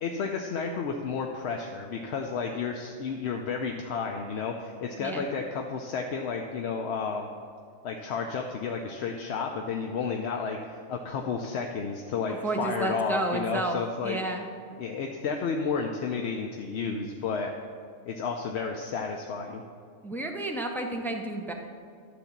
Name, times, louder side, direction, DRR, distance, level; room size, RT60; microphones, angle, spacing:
voice 1, 0.0-7.3 7.8-14.2 14.8-17.5 18.1-19.6, left 5 dB, 60° left, 2 dB, 0.8 m, -32 dB
voice 2, 12.4-14.5 20.0-21.5, right 2 dB, 5° left, 2 dB, 0.4 m, -31 dB
11.5 x 3.9 x 7.1 m, 2.3 s
omnidirectional pair, 1.4 m